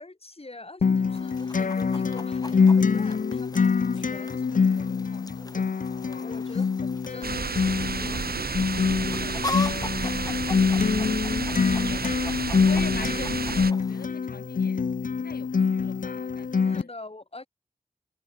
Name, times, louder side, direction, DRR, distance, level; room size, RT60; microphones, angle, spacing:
voice 1, 0.0-5.7 6.2-8.7 9.0-10.9 11.5-12.4 16.6-17.5, left 2 dB, 40° left, 3.2 m, -46 dB
Acoustic guitar, 0.8-16.8, left 5 dB, 60° left, 0.6 m, -25 dB
Chicken rooster, 1.1-14.1, left 2 dB, 25° left, 1.3 m, -40 dB
voice 2, 6.0-6.6 12.6-14.8 15.2-16.9, left 5 dB, 80° left, 1.0 m, -41 dB
sound 1, 7.2-13.7, right 5 dB, 75° right, 1.4 m, -31 dB
wide cardioid pair, 50°, 16 cm